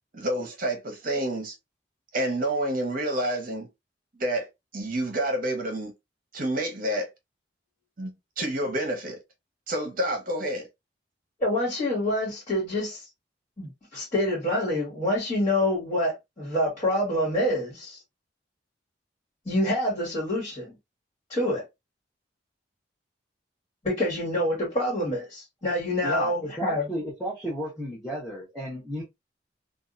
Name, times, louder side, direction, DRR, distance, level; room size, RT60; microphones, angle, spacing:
voice 1, 0.1-1.6 2.1-3.7 4.1-5.9 6.3-7.1 8.0-9.2 9.7-10.7, right 1 dB, 50° right, 0.8 m, -29 dB
voice 2, 11.4-13.0 13.6-18.0 19.4-20.7 21.3-21.6 23.8-26.9, left 1 dB, 30° left, 1.6 m, -26 dB
voice 3, 26.0-29.0, right 1 dB, ahead, 0.9 m, -33 dB
2.7 x 2.3 x 2.4 m
head